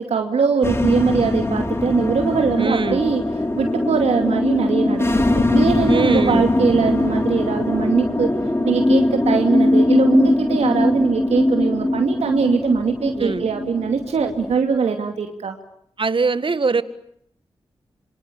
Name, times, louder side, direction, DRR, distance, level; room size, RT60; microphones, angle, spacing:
voice 1, 0.0-3.2 3.6-5.2 5.5-8.3 8.6-15.6, right 5 dB, 90° right, 4 dB, 2.5 m, -21 dB
sound 1, 0.6-14.6, left 1 dB, 25° left, 3.6 m, -21 dB
voice 2, 2.6-3.0 5.9-6.5 13.2-13.5 16.0-16.8, right 4 dB, 55° right, 13 dB, 1.8 m, -22 dB
27.5 x 24.5 x 8.6 m, 0.71 s
cardioid pair, 55°, 11 cm